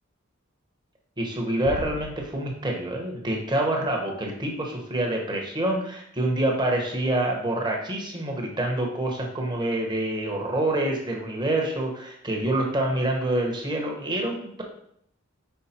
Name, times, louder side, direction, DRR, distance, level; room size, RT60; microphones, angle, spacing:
voice 1, 1.2-14.6, right 1 dB, 20° right, 0 dB, 1.2 m, -27 dB
sound 1, 1.7-3.1, left 2 dB, 55° left, 0.7 m, -39 dB
5.7 x 4.6 x 4.4 m, 0.71 s
head